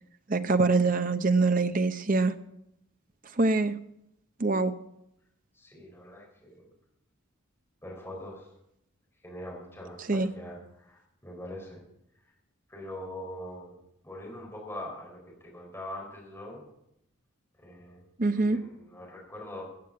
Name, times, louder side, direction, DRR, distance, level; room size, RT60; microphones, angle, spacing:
voice 1, 0.3-2.3 3.4-3.7 4.4-4.7 10.1-10.3 18.2-18.6, right 3 dB, 40° right, 10 dB, 0.8 m, -24 dB
voice 2, 5.5-6.6 7.8-8.5 9.2-11.8 12.7-13.7 14.0-16.7 17.6-18.0 18.5-19.6, left 1 dB, 10° left, -3 dB, 4.1 m, -42 dB
15.5 x 7.6 x 8.6 m, 0.80 s
head